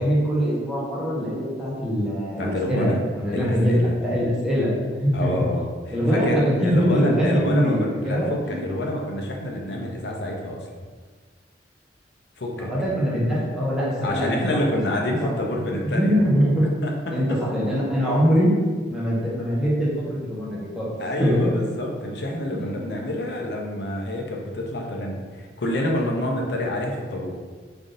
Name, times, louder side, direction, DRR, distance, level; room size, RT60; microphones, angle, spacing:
voice 1, 0.0-2.9 3.1-5.4 5.9-8.3 12.5-14.6 15.7-16.6 17.1-18.5 18.9-20.9 21.2-21.4 22.7-22.9, equal, 5° right, -7 dB, 0.9 m, -23 dB
voice 2, 2.4-3.0 3.3-3.9 5.1-10.6 12.4-12.7 14.0-16.2 16.8-17.1 21.0-27.3, left 1 dB, 70° left, 0 dB, 0.6 m, -27 dB
3.4 x 2.6 x 3.8 m, 1.5 s
head